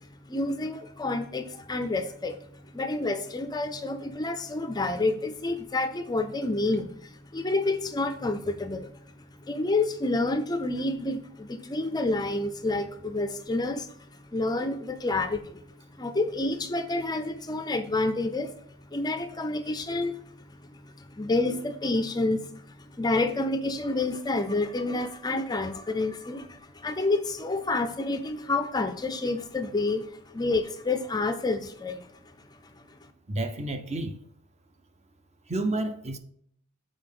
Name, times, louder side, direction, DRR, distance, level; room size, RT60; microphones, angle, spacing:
voice 1, 0.0-8.9 9.4-15.6 15.9-18.6 18.9-33.1, left 2 dB, 20° left, 0.5 m, -29 dB
voice 2, 33.3-34.2 35.5-36.2, right 2 dB, 30° right, 0.7 m, -30 dB
7.8 x 4.4 x 4.9 m
head